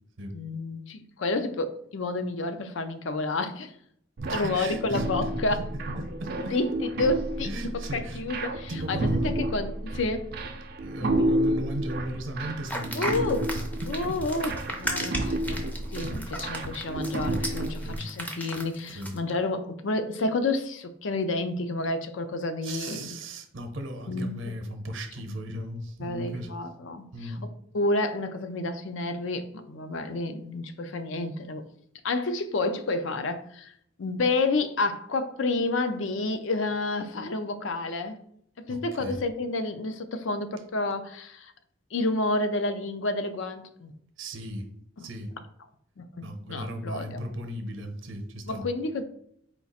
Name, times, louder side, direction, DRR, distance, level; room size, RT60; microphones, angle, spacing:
voice 1, 0.3-3.7 4.3-5.7 6.5-10.3 11.0-11.2 12.9-13.4 13.9-15.6 15.9-23.1 24.1-24.3 25.3-25.4 26.0-27.3 27.7-31.6 32.0-33.7 34.0-38.2 38.6-41.5 41.9-43.9 45.0-45.1 46.0-46.1 46.5-47.2 48.5-49.0, left 2 dB, 70° left, 9 dB, 0.5 m, -30 dB
sound 1, 4.2-18.0, right 1 dB, 50° right, 0.4 m, -31 dB
voice 2, 4.3-5.3 5.6-6.5 7.4-8.2 8.7-9.4 10.8-14.2 17.0-17.1 17.8-18.1 18.9-19.2 22.6-26.5 27.1-27.5 38.7-39.2 44.2-44.7 45.0-45.3 46.2-48.6, right 1 dB, 70° right, 5 dB, 0.8 m, -37 dB
sound 2, 12.7-19.2, equal, 10° left, 0.5 m, -35 dB
4.5 x 2.4 x 4.1 m, 0.68 s
head